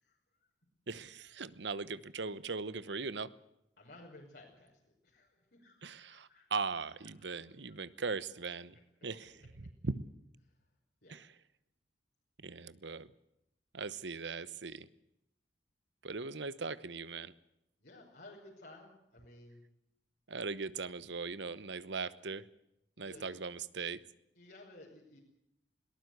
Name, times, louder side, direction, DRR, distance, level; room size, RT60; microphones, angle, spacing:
voice 1, 0.0-0.5 3.8-6.5 7.2-7.8 10.4-10.5 11.0-11.3 17.8-19.6 23.0-23.4 24.4-25.2, left 2 dB, 60° left, -3 dB, 5.6 m, -56 dB
voice 2, 0.9-3.3 5.8-8.8 9.0-10.0 11.1-11.3 12.4-13.1 13.7-14.9 16.0-17.3 20.3-22.5 23.0-24.0, right 4 dB, 75° right, 16 dB, 1.0 m, -39 dB
22.0 x 19.0 x 8.0 m, 0.81 s
head